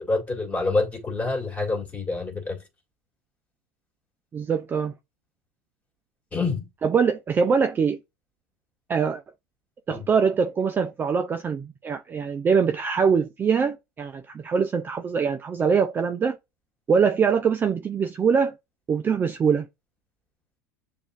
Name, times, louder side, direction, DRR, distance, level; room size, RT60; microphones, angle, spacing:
voice 1, 0.0-2.6 6.3-6.7 9.9-10.1, left 3 dB, 15° left, 2.0 m, -27 dB
voice 2, 4.3-4.9 6.8-8.0 8.9-9.2 9.9-16.4 16.9-18.5 18.9-19.7, right 6 dB, 25° right, 0.4 m, -23 dB
7.0 x 2.5 x 2.5 m
hypercardioid pair, 100°, 9 cm